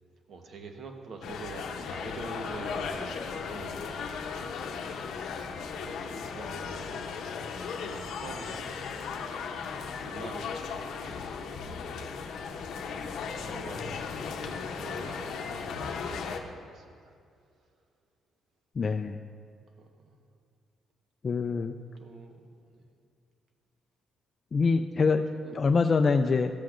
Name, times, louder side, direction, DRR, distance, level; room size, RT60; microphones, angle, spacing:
voice 1, 0.3-4.6 5.7-7.2 7.6-9.5 10.0-11.7 13.3-16.9 19.8-19.9 21.6-22.8 25.3-25.8, right 3 dB, 60° right, 4 dB, 1.0 m, -46 dB
sound 1, 1.2-16.4, left 5 dB, 75° left, 0.7 m, -36 dB
voice 2, 18.8-19.2 21.2-21.7 24.5-25.2 25.5-26.5, left 4 dB, 40° left, 6 dB, 0.3 m, -24 dB
13.5 x 7.7 x 2.5 m, 2.3 s
cardioid pair, 90°, 0 cm